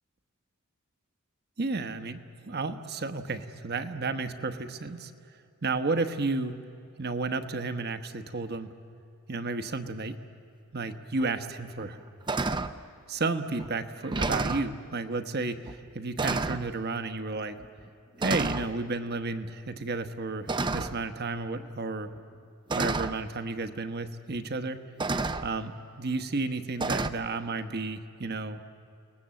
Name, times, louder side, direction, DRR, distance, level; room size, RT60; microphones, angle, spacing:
voice 1, 1.6-5.1 5.6-6.6 7.0-8.7 9.3-10.2 10.7-12.0 13.1-17.6 18.2-22.1 22.7-24.9 25.4-28.6, right 3 dB, 50° right, 9 dB, 1.1 m, -32 dB
sound 1, 11.2-11.3 11.8-12.0 12.3-12.8 13.6-13.7 14.0-14.7 15.7-15.8 16.2-16.7 17.6-17.8 18.2-18.7 20.5-21.1 22.2-22.3 22.7-23.2 24.3-24.4 25.0-25.5 26.8-27.1, right 3 dB, 20° right, 0.5 m, -30 dB
30.0 x 19.0 x 7.7 m, 2.4 s
head